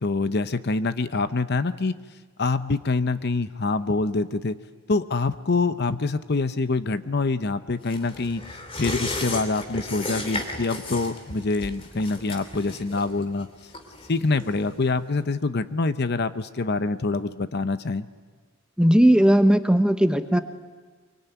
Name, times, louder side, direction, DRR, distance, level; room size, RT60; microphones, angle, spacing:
voice 1, 0.0-1.9 2.4-4.6 4.9-8.4 8.8-13.5 14.1-18.1, left 3 dB, 50° left, 12 dB, 0.8 m, -25 dB
sound 1, 7.9-14.9 15.2-15.3, left 2 dB, 25° left, 2.9 m, -34 dB
voice 2, 18.8-20.4, equal, 5° right, 8 dB, 0.9 m, -17 dB
24.5 x 23.5 x 9.3 m, 1.4 s
head